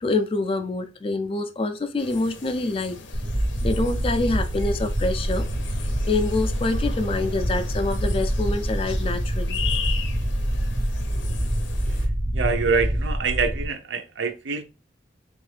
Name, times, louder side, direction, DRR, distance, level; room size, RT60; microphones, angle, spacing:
voice 1, 0.0-3.0 3.6-5.5 6.1-9.6, left 2 dB, 30° left, 0.3 m, -26 dB
sound 1, 2.0-12.1, left 6 dB, 80° left, 0.6 m, -38 dB
sound 2, 3.1-13.7, equal, 30° right, 0.5 m, -26 dB
voice 2, 12.3-14.6, right 5 dB, 75° right, 0.6 m, -25 dB
3.6 x 2.5 x 3.2 m
head